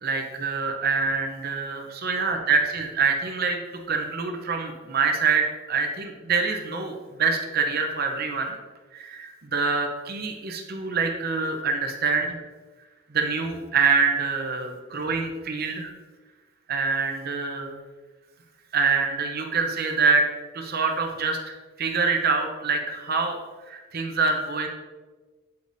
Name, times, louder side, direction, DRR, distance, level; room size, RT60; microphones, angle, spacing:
voice 1, 0.0-3.6 3.9-8.6 8.9-12.3 13.1-15.9 16.7-17.8 18.7-20.3 20.5-21.4 21.8-23.4 23.7-24.7, right 4 dB, 50° right, 4 dB, 0.7 m, -25 dB
8.1 x 5.0 x 2.7 m, 1.3 s
head